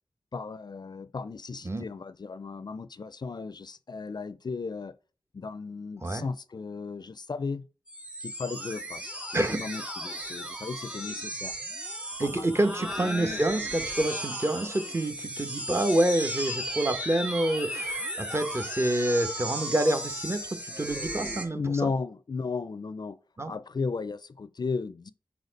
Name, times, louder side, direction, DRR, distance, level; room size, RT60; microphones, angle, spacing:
voice 1, 0.3-4.9 5.3-7.7 8.2-11.6 12.2-13.4 21.5-23.2 23.5-25.1, left 4 dB, 50° left, 0.4 m, -35 dB
sound 1, 7.9-21.5, right 1 dB, 10° right, 1.7 m, -35 dB
voice 2, 12.2-21.6 23.4-23.5, right 1 dB, 30° right, 0.9 m, -27 dB
4.7 x 4.1 x 5.1 m
cardioid pair, 50°, 9 cm